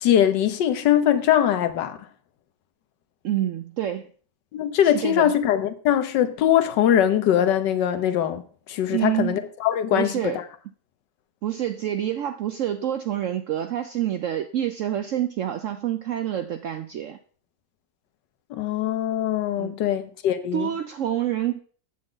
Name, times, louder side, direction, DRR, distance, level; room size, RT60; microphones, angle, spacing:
voice 1, 0.0-2.0 4.5-10.4 18.5-20.7, left 10 dB, 85° left, 1.4 m, -22 dB
voice 2, 3.2-4.1 4.8-5.3 8.9-9.5 9.9-10.4 11.4-17.2 19.6-19.8 20.5-21.6, right 11 dB, 75° right, 0.7 m, -27 dB
8.8 x 7.7 x 3.8 m
omnidirectional pair, 1.9 m